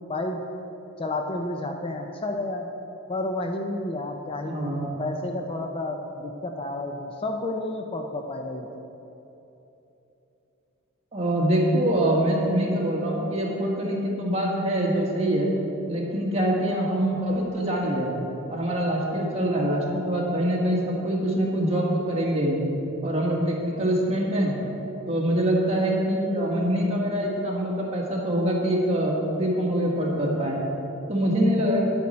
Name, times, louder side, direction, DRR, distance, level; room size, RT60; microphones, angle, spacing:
voice 1, 0.1-0.4 1.0-2.7 3.1-8.7, left 2 dB, 25° left, 3 dB, 0.5 m, -31 dB
voice 2, 4.4-4.9 11.1-15.5 15.9-18.1 18.5-22.6 23.0-24.5 25.1-30.6 31.1-31.8, right 1 dB, 30° right, -3 dB, 1.6 m, -24 dB
9.7 x 8.4 x 4.2 m, 3.0 s
head